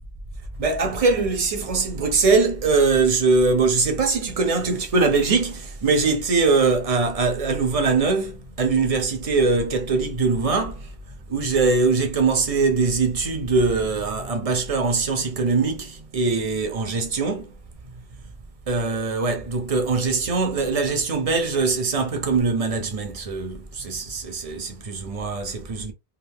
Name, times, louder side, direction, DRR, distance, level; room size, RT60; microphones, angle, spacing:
voice 1, 0.6-11.0 11.3-17.6 18.7-25.9, right 4 dB, 40° right, 0.7 m, -22 dB
2.5 x 2.4 x 3.4 m
omnidirectional pair, 1.1 m